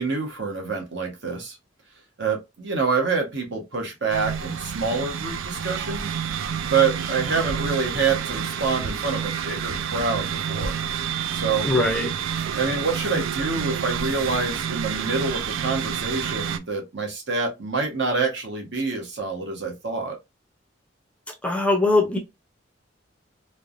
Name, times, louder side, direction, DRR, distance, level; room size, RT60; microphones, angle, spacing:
voice 1, 0.0-1.6 2.2-6.1 6.7-10.7 11.3-11.7 12.6-20.2, right 4 dB, 60° right, 1.0 m, -26 dB
sound 1, 4.1-16.6, right 8 dB, 85° right, 0.4 m, -29 dB
voice 2, 11.6-12.1 21.4-22.2, left 2 dB, 5° left, 0.5 m, -21 dB
3.2 x 2.1 x 2.4 m
head